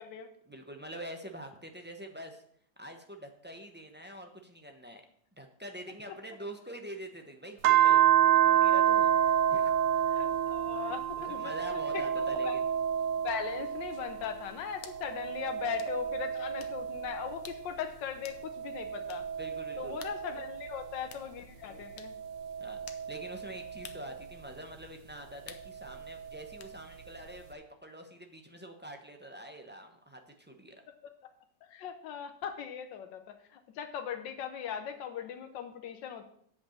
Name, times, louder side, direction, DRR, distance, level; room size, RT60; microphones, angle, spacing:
voice 1, 0.5-2.4 2.8-5.0 5.4-9.8 11.3-12.6 19.4-20.0 22.6-30.8, right 1 dB, 10° right, 4 dB, 0.4 m, -45 dB
sound 1, 7.6-14.4 14.8-17.7 18.3-21.1 21.8-24.3 25.6-26.7, right 10 dB, 80° right, 1.3 m, -29 dB
voice 2, 10.1-12.6 13.2-19.3 19.8-22.1 31.6-36.2, left 8 dB, 85° left, 7 dB, 1.4 m, -39 dB
sound 2, 13.9-14.1 14.8-15.0 15.8-15.9 16.6-16.8 17.5-17.7 18.3-18.4 19.1-19.3 20.0-20.2 21.1-21.3 22.0-22.2 22.9-23.1 23.8-24.1 25.5-25.7 26.6-26.8, left 8 dB, 60° left, 1.1 m, -49 dB
8.4 x 5.4 x 7.2 m, 0.66 s
omnidirectional pair, 1.9 m